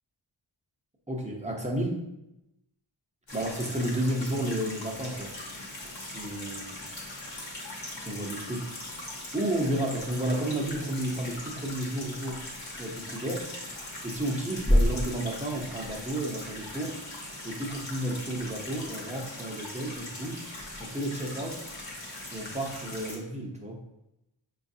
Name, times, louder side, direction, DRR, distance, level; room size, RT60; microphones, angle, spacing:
voice 1, 1.1-2.0 3.3-5.3 6.0-6.7 8.0-8.7 9.3-12.4 12.8-13.5 14.0-17.0 17.4-20.4 20.8-21.7 22.3-23.8, right 1 dB, 15° right, 0 dB, 0.7 m, -32 dB
sound 1, 3.3-23.2, left 1 dB, 70° left, 1.1 m, -40 dB
sound 2, 12.2-16.5, left 1 dB, 20° left, 0.6 m, -31 dB
5.0 x 2.4 x 2.7 m, 0.88 s
wide cardioid pair, 50°, 47 cm